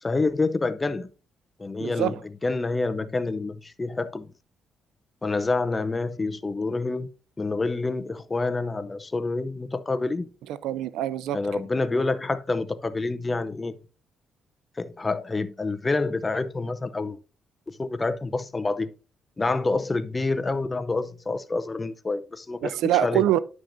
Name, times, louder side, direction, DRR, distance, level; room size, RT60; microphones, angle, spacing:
voice 1, 0.0-1.1 1.6-2.1 2.4-4.3 5.2-7.1 7.4-10.3 11.3-13.8 14.8-17.2 17.8-18.9 19.4-23.2, left 3 dB, 25° left, 0.6 m, -27 dB
voice 2, 1.8-2.2 10.5-11.6 22.6-23.4, right 12 dB, 90° right, 0.4 m, -25 dB
10.0 x 6.2 x 2.6 m
cardioid pair, 90°, 0 cm